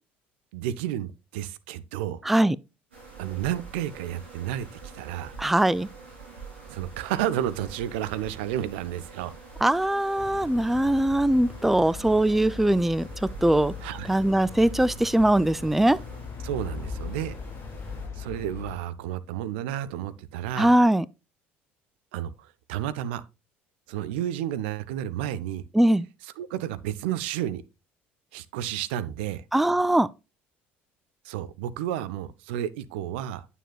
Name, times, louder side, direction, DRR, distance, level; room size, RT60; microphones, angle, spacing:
voice 1, 0.5-2.2 3.2-4.7 4.9-5.4 6.7-9.3 13.8-14.1 16.4-17.4 18.2-20.7 22.1-22.3 22.7-23.2 23.9-25.6 26.4-27.6 28.3-29.4 31.2-33.4, right 11 dB, 70° right, 0.5 m, -31 dB
voice 2, 2.2-2.6 5.4-5.9 9.6-13.7 14.1-16.0 20.6-21.1 25.7-26.1 29.5-30.1, right 1 dB, 5° right, 0.3 m, -21 dB
sound 1, 2.9-18.1, right 4 dB, 90° right, 3.0 m, -46 dB
sound 2, 10.2-18.8, left 5 dB, 45° left, 0.9 m, -39 dB
9.0 x 6.8 x 2.2 m
hypercardioid pair, 60°, 6 cm